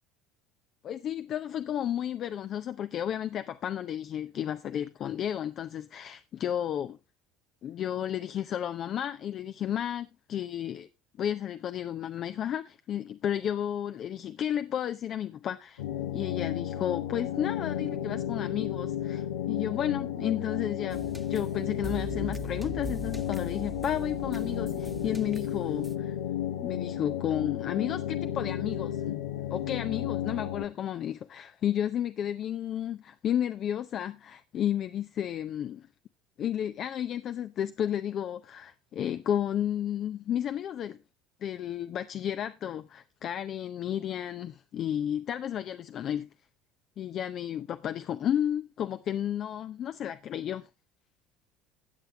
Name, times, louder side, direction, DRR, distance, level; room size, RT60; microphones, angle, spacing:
voice 1, 0.8-7.0 7.6-10.9 11.2-15.8 16.1-21.0 21.3-26.2 26.6-29.0 29.5-35.9 36.4-41.0 41.4-46.3 47.0-50.7, left 10 dB, 50° left, 0.6 m, -32 dB
sound 1, 15.8-30.6, left 10 dB, 80° left, 1.1 m, -33 dB
sound 2, 20.9-26.0, right 3 dB, 10° right, 1.1 m, -41 dB
13.5 x 8.3 x 3.3 m
hypercardioid pair, 70°, 0 cm